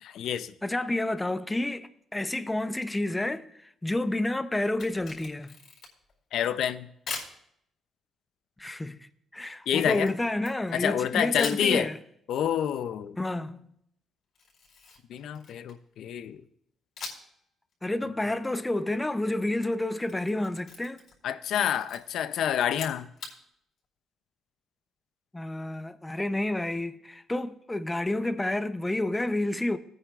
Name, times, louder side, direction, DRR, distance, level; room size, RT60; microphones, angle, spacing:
voice 1, 0.0-0.5 6.3-6.9 9.7-10.1 10.7-11.9 12.3-13.2 15.1-16.4 21.2-23.1, left 9 dB, 75° left, 0.5 m, -28 dB
voice 2, 0.6-5.5 8.6-9.0 9.3-12.0 13.2-13.7 17.8-21.0 25.3-29.8, left 1 dB, 15° left, 0.7 m, -30 dB
Camera, 4.7-6.1 7.1-7.4 9.8-11.0 11.4-11.7 14.3-15.9 17.0-17.4 17.7-17.8 19.8-21.2 21.5-22.0 22.7-23.4, left 4 dB, 60° left, 4.6 m, -41 dB
18.5 x 9.4 x 2.4 m
cardioid pair, 90°, 0 cm